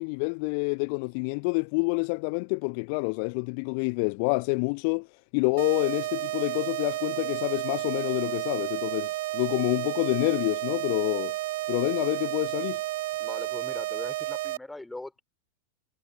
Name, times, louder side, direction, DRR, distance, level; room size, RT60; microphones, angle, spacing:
voice 1, 0.0-5.1 5.3-11.3 11.7-12.8, left 37 dB, 45° left, 0.4 m, -28 dB
sound 1, 5.6-14.6, right 18 dB, 50° right, 0.4 m, -32 dB
voice 2, 13.2-15.2, left 2 dB, 5° left, 4.0 m, -41 dB
figure-of-eight pair, 90°, 0 cm